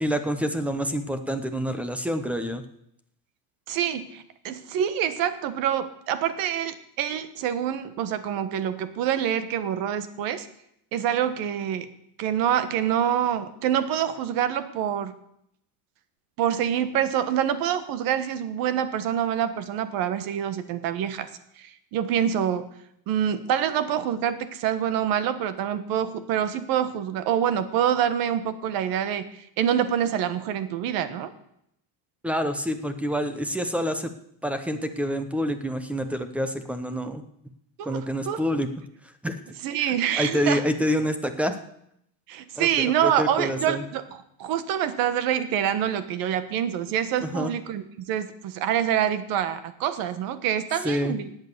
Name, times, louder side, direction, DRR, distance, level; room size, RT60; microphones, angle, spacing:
voice 1, 0.0-2.6 32.2-34.1 34.4-37.2 37.8-38.7 39.2-39.4 39.9-41.6 42.6-43.8 47.2-47.5 50.8-51.1, equal, 5° right, 9 dB, 0.8 m, -27 dB
voice 2, 3.7-10.5 10.9-11.9 12.2-15.1 16.4-21.3 21.6-22.7 23.1-31.3 37.8-38.4 39.6-40.6 42.3-44.0 44.4-51.3, right 9 dB, 60° right, 13 dB, 1.4 m, -26 dB
16.5 x 9.0 x 6.8 m, 0.74 s
cardioid pair, 170°, 40 cm